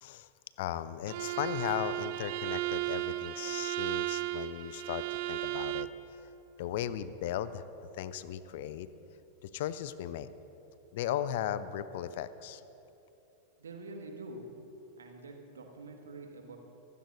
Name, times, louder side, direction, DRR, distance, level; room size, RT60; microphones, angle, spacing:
voice 1, 0.6-5.9 6.6-7.6 7.9-8.9 9.4-10.3 10.9-12.6, left 11 dB, 50° left, 15 dB, 0.5 m, -36 dB
Bowed string instrument, 1.1-6.0, right 15 dB, 50° right, 0.5 m, -35 dB
voice 2, 13.6-14.4 15.0-16.6, right 2 dB, 70° right, 2 dB, 1.8 m, -46 dB
25.0 x 15.0 x 2.7 m, 3.0 s
figure-of-eight pair, 90°, 0 cm